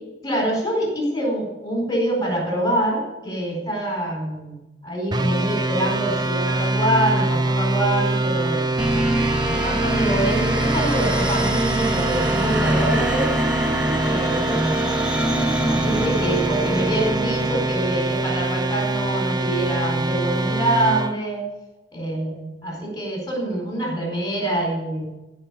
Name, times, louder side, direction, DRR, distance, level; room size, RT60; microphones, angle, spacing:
voice 1, 0.2-13.4 14.0-15.0 15.7-21.5 21.9-25.1, right 1 dB, 20° left, 1 dB, 4.5 m, -25 dB
sound 1, 5.1-21.1, right 2 dB, 25° right, 0.7 m, -24 dB
sound 2, 8.8-18.2, right 1 dB, 5° right, 1.1 m, -24 dB
15.0 x 5.9 x 8.3 m, 1.0 s
head